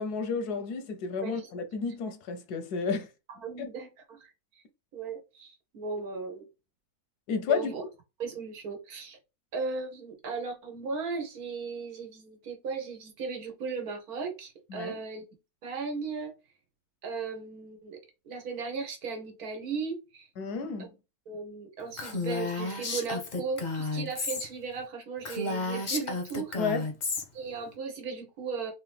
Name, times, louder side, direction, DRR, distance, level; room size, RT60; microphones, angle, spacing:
voice 1, 0.0-3.1 3.6-3.7 7.3-7.8 14.7-15.0 20.4-20.9 26.6-26.8, left 5 dB, 85° left, 1.3 m, -31 dB
voice 2, 3.3-4.3 4.5-4.6 4.9-6.4 7.5-7.8 8.2-9.2 9.5-15.3 15.6-16.3 17.0-18.0 18.2-20.3 21.3-26.6 27.3-28.7, right 4 dB, 75° right, 1.5 m, -36 dB
Female speech woman speaking, 22.0-24.5 24.8-24.9 25.2-27.2, left 3 dB, 40° left, 0.7 m, -32 dB
3.8 x 2.8 x 3.2 m
omnidirectional pair, 1.6 m